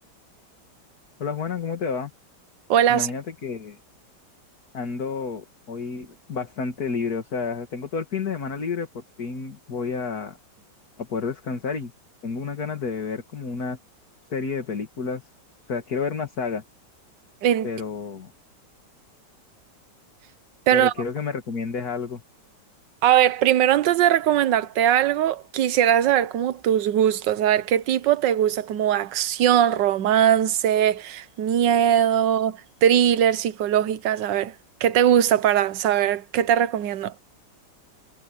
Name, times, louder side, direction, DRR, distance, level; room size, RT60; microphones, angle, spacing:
voice 1, 1.2-2.1 2.9-3.8 4.7-10.4 11.0-11.9 12.2-13.8 14.3-15.2 15.7-16.6 17.6-18.3 20.7-22.2, left 5 dB, 60° left, 2.5 m, -30 dB
voice 2, 2.7-3.1 17.4-17.7 20.7-20.9 23.0-34.5 34.8-37.1, right 10 dB, 85° right, 1.5 m, -20 dB
omnidirectional pair, 1.9 m